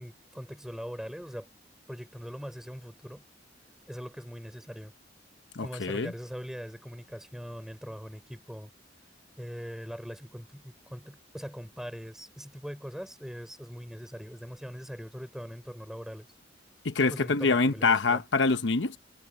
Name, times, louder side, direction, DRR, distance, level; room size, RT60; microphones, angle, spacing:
voice 1, 0.0-1.5 1.9-3.2 3.9-4.9 5.6-8.7 9.4-16.3 17.0-18.2, equal, 5° right, 4.4 m, -41 dB
voice 2, 5.5-6.1 16.8-19.0, left 4 dB, 80° left, 0.9 m, -25 dB
head